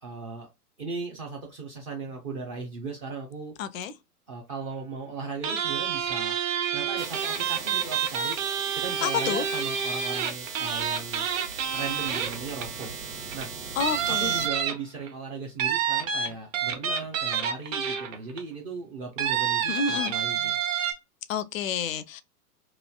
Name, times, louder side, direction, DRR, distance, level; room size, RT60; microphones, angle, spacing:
voice 1, 0.0-0.5 0.8-3.5 4.3-6.4 6.7-8.4 8.7-11.3 11.7-12.9 13.3-13.5 14.1-20.5, right 4 dB, 25° right, 0.4 m, -37 dB
voice 2, 3.6-3.9 9.0-9.4 13.8-14.5 19.7-20.1 21.3-22.2, left 7 dB, 55° left, 0.5 m, -29 dB
sound 1, 5.4-12.9 13.3-13.4 13.8-15.1 15.6-18.4 19.2-20.9, right 7 dB, 55° right, 1.0 m, -28 dB
sound 2, 7.0-14.5, right 5 dB, 80° right, 1.1 m, -39 dB
3.1 x 2.4 x 2.2 m
figure-of-eight pair, 110°, 47 cm